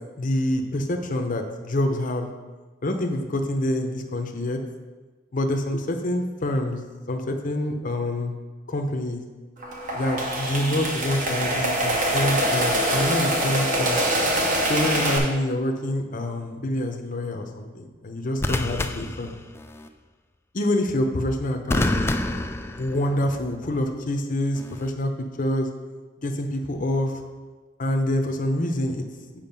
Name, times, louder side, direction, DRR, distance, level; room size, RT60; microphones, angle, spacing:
voice 1, 0.2-2.3 2.8-4.6 5.3-6.8 7.1-8.3 8.7-9.2 9.9-14.0 14.7-19.3 20.5-22.1 22.8-25.7 26.2-27.1 27.8-29.0, left 1 dB, 45° left, 4 dB, 0.7 m, -26 dB
sound 1, 9.6-15.2, right 1 dB, 45° right, 1.2 m, -24 dB
sound 2, 14.5-14.9 18.4-19.9 21.7-23.4 24.6-24.9, left 1 dB, 15° left, 0.3 m, -28 dB
7.3 x 5.1 x 5.3 m, 1.3 s
head